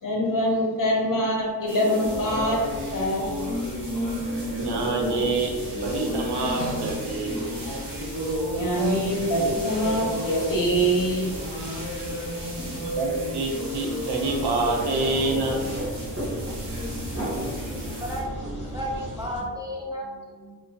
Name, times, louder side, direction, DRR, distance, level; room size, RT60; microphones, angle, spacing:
voice 1, 0.0-3.4 8.5-11.3 12.4-12.8, equal, 55° left, -1 dB, 0.6 m, -25 dB
sound 1, 1.7-18.2, equal, 55° right, 0.9 m, -33 dB
sound 2, 2.0-19.4, left 1 dB, 15° left, 0.8 m, -40 dB
voice 2, 4.6-5.5 5.8-7.4 13.0-15.6, right 2 dB, 85° right, 0 dB, 0.6 m, -26 dB
sound 3, 14.2-19.4, right 1 dB, 30° right, 0.8 m, -34 dB
voice 3, 17.3-20.6, equal, 10° right, -2 dB, 0.3 m, -34 dB
3.0 x 2.1 x 2.5 m, 1.5 s
wide cardioid pair, 85°, 39 cm